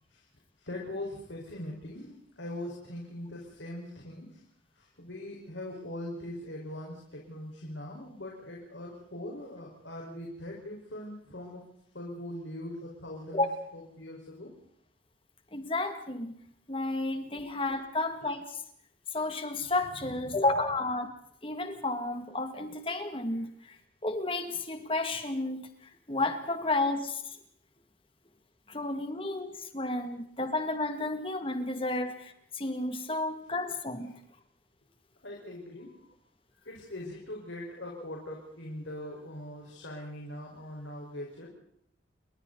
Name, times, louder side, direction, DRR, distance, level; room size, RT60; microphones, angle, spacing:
voice 1, 0.6-4.3 4.8-11.6 11.9-13.4 13.7-14.5 17.3-17.4 20.1-20.4 35.2-36.0 36.6-41.5, left 1 dB, 90° left, -1 dB, 5.0 m, -41 dB
voice 2, 15.5-16.3 16.7-18.5 19.1-21.1 21.4-23.8 24.0-25.7 26.1-27.2 28.7-34.2, left 2 dB, 30° left, 7 dB, 2.2 m, -32 dB
29.5 x 22.5 x 4.1 m, 0.69 s
head